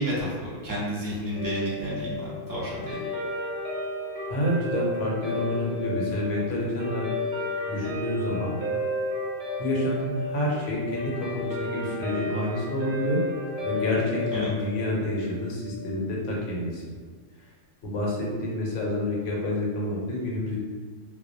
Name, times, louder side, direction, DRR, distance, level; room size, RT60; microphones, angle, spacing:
voice 1, 0.0-3.0 14.3-14.5, equal, 25° right, -8 dB, 0.4 m, -31 dB
Guitar, 1.3-15.9, left 1 dB, 65° right, 0.9 m, -33 dB
voice 2, 4.3-7.1 7.7-8.6 9.6-13.2 13.6-16.8 17.8-20.6, left 1 dB, 80° left, -3 dB, 1.0 m, -28 dB
2.3 x 2.1 x 2.5 m, 1.4 s
omnidirectional pair, 1.3 m